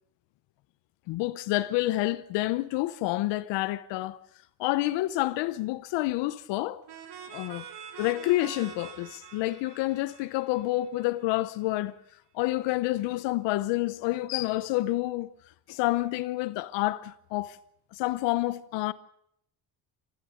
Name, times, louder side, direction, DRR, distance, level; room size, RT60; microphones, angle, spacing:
voice 1, 1.1-4.2 4.6-6.8 7.3-7.6 8.0-12.0 12.3-15.3 15.7-17.6 17.9-18.9, left 17 dB, 90° left, 0.9 m, -28 dB
sound 1, 6.9-11.5, right 7 dB, 70° right, 3.0 m, -46 dB
29.0 x 13.5 x 7.7 m
supercardioid pair, 75°, 42 cm